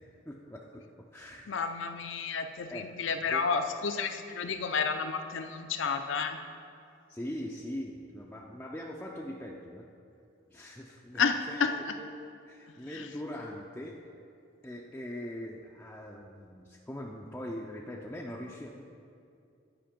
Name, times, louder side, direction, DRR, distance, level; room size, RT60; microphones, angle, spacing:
voice 1, 0.3-1.5 2.7-2.9 3.3-3.5 7.1-9.9 10.5-11.2 11.5-11.6 12.0-12.1 12.4-14.2 14.6-18.8, left 1 dB, 10° left, -2 dB, 0.4 m, -41 dB
voice 2, 1.5-6.4 11.1-11.7 12.9-13.1, left 5 dB, 70° left, 7 dB, 0.5 m, -31 dB
10.0 x 5.1 x 5.2 m, 2.5 s
head